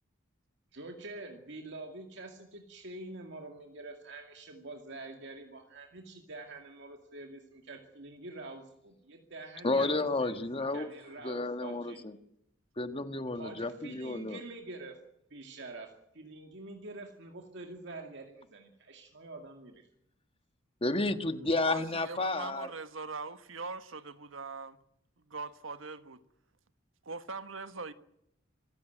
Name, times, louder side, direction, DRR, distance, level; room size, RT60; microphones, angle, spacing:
voice 1, 0.7-10.4 10.7-12.0 13.3-15.0 15.3-19.9, right 2 dB, 60° right, 2.2 m, -46 dB
voice 2, 9.6-10.9 11.2-12.1 12.8-14.4 20.8-22.7, left 2 dB, 30° left, 1.5 m, -31 dB
voice 3, 21.6-24.8 25.3-26.2 27.0-27.9, right 4 dB, 75° right, 1.4 m, -41 dB
25.5 x 15.0 x 9.2 m
head